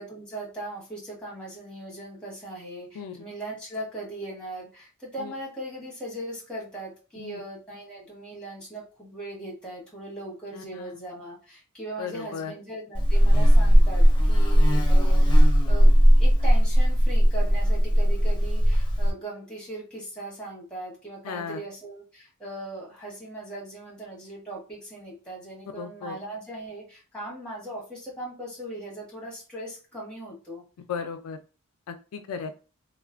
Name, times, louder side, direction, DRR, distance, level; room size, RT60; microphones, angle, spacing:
voice 1, 0.0-15.9 16.2-30.6, right 1 dB, 5° left, -4 dB, 1.3 m, -39 dB
voice 2, 10.5-10.9 12.0-12.5 21.3-21.6 25.8-26.2 30.9-31.4 31.9-32.5, left 6 dB, 70° left, 8 dB, 0.3 m, -35 dB
Buzz, 12.9-19.1, equal, 20° left, 0.7 m, -18 dB
3.1 x 2.1 x 2.3 m, 0.34 s
head